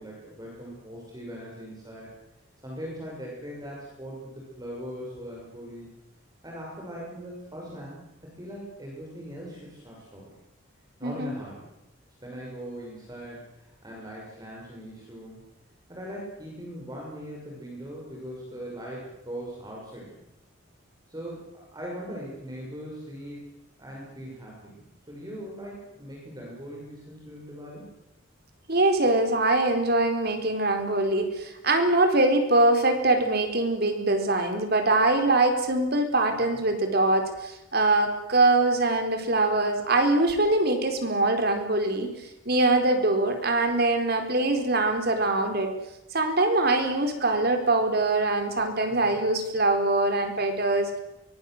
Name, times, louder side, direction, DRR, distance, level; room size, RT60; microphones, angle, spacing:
voice 1, 0.0-2.1 2.6-5.9 6.4-8.0 8.4-10.3 11.0-11.7 12.2-15.4 15.9-20.2 21.1-23.5 23.8-27.9 36.4-36.6 49.0-49.2, equal, 20° right, -3 dB, 6.6 m, -40 dB
voice 2, 11.0-11.3 28.7-42.1 42.5-45.7 46.1-51.0, right 2 dB, 50° right, 5 dB, 4.2 m, -23 dB
24.0 x 21.5 x 8.0 m, 0.92 s
head